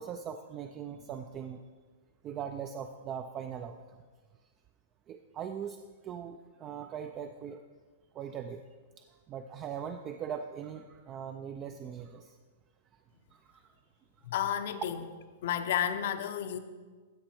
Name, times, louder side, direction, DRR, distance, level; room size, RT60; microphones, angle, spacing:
voice 1, 0.0-1.6 2.2-4.0 5.1-7.6 8.1-8.6 9.0-12.3 13.3-13.7, right 8 dB, 25° right, 7 dB, 0.4 m, -40 dB
voice 2, 14.2-15.0 15.4-16.6, left 10 dB, 55° left, 10 dB, 0.7 m, -31 dB
15.5 x 5.3 x 4.4 m, 1.5 s
hypercardioid pair, 160°, 0 cm